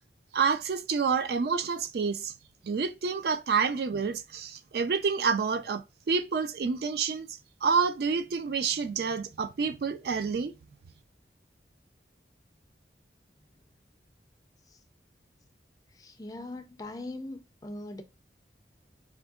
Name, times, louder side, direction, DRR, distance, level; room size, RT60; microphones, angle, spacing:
voice 1, 0.3-2.3 2.6-10.5, right 5 dB, 60° right, 0.4 m, -28 dB
voice 2, 16.0-18.0, left 2 dB, 20° left, 0.3 m, -40 dB
4.3 x 2.5 x 2.2 m
head